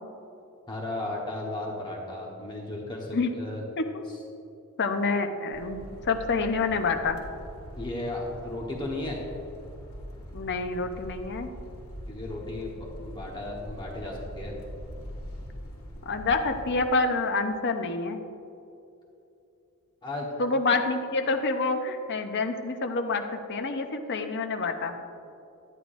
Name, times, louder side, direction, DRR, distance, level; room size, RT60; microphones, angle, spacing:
voice 1, 0.7-3.6 7.8-9.2 12.1-14.5 20.0-20.3, left 2 dB, 20° left, -3 dB, 1.2 m, -35 dB
voice 2, 4.8-5.8 6.1-7.2 10.3-11.5 16.0-18.2 20.4-25.0, left 3 dB, 55° left, 6 dB, 0.7 m, -27 dB
sound 1, 5.5-16.9, equal, 80° left, 1.8 m, -42 dB
10.5 x 10.0 x 2.6 m, 2.7 s
head